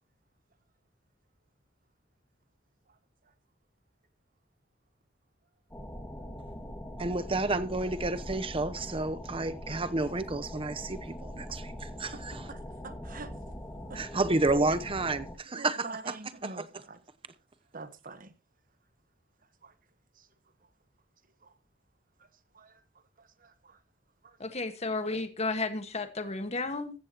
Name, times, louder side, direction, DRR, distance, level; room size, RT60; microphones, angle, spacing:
sound 1, 5.7-15.4, equal, 10° left, 2.0 m, -42 dB
voice 1, 7.0-12.5 13.9-16.2 16.4-16.7, right 2 dB, 30° right, 0.8 m, -31 dB
voice 2, 12.5-13.3 13.9-14.0 14.3-14.8 15.5-17.0 17.7-18.3 19.6-19.7 21.4-21.5 22.5-22.8 23.2-23.8 24.2-24.4, right 3 dB, 45° right, 1.3 m, -44 dB
voice 3, 24.4-26.9, left 3 dB, 35° left, 1.5 m, -33 dB
15.0 x 14.5 x 3.0 m
head